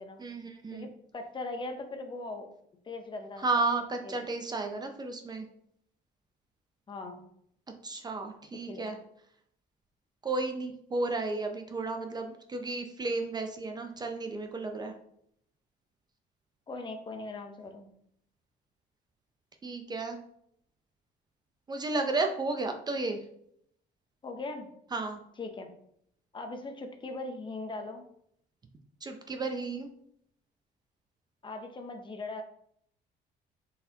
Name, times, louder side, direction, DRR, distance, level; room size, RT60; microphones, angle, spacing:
voice 1, 0.2-0.9 3.4-5.5 7.8-9.0 10.2-14.9 19.6-20.2 21.7-23.2 24.9-25.2 29.0-29.9, right 3 dB, 25° right, 5 dB, 0.5 m, -33 dB
voice 2, 0.7-2.5 2.8-3.6 4.0-4.2 6.9-7.2 8.7-8.9 16.7-17.9 24.2-24.7 25.4-25.7 26.3-28.0 31.4-32.4, left 2 dB, 30° left, 5 dB, 0.6 m, -40 dB
4.1 x 4.0 x 2.7 m, 0.70 s
cardioid pair, 110°, 17 cm